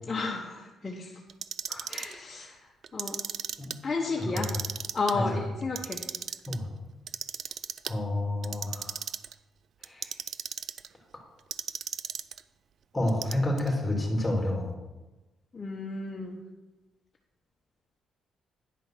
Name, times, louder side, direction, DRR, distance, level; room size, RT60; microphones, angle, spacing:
voice 1, 0.1-1.2 1.9-2.6 2.9-3.2 3.8-4.5 4.9-6.0 15.5-16.4, left 3 dB, 30° left, -1 dB, 1.0 m, -32 dB
Clock, 1.3-2.1 2.8-3.8 4.2-5.1 5.6-6.6 7.1-7.9 8.4-9.3 9.8-10.9 11.5-12.4 13.1-13.7, right 8 dB, 60° right, 0.3 m, -35 dB
voice 2, 4.2-4.6 5.1-5.4 6.5-6.7 7.9-9.0 9.8-10.1 12.9-14.7, left 1 dB, 10° left, 0 dB, 2.8 m, -29 dB
10.0 x 5.3 x 5.9 m, 1.1 s
cardioid pair, 90°, 0 cm